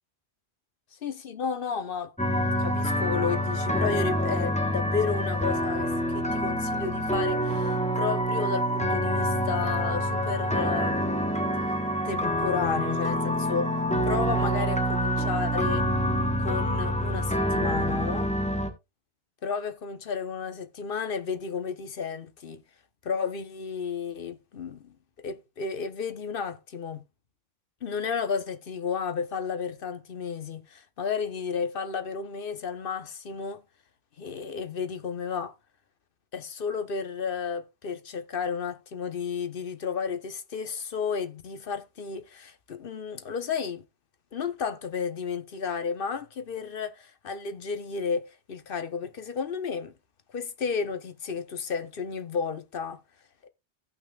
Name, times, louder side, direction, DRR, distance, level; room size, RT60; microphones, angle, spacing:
voice 1, 1.0-2.1 2.6-11.4 12.0-13.8 14.1-15.9 16.4-18.3 19.4-22.6 23.0-24.9 25.2-27.0 27.8-33.6 34.2-35.5 36.3-43.8 44.3-49.9 50.3-53.0, left 6 dB, 60° left, 1.1 m, -32 dB
sound 1, 2.2-18.7, equal, 5° left, 1.2 m, -27 dB
16.5 x 6.0 x 2.4 m
omnidirectional pair, 1.1 m